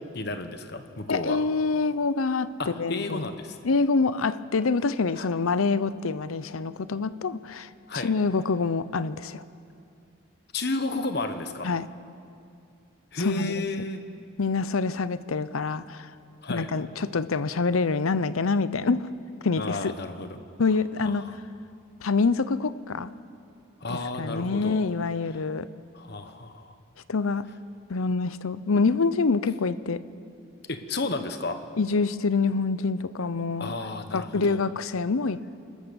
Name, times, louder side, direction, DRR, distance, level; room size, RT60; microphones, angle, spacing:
voice 1, 0.1-1.4 2.6-3.6 5.2-5.3 7.9-8.1 10.5-11.7 13.1-14.0 16.4-16.7 19.6-20.4 21.0-21.4 23.8-24.8 25.9-26.7 30.7-31.6 33.6-34.6, left 2 dB, 50° left, 8 dB, 1.3 m, -32 dB
voice 2, 1.1-3.3 3.6-7.7 8.0-9.4 11.6-11.9 13.2-13.6 14.4-16.1 16.5-19.1 19.4-19.9 20.6-21.3 22.0-23.1 23.9-25.7 27.1-27.5 27.9-30.0 31.8-33.7 34.1-35.5, left 4 dB, 85° left, 15 dB, 0.7 m, -26 dB
27.5 x 13.5 x 7.0 m, 2.5 s
head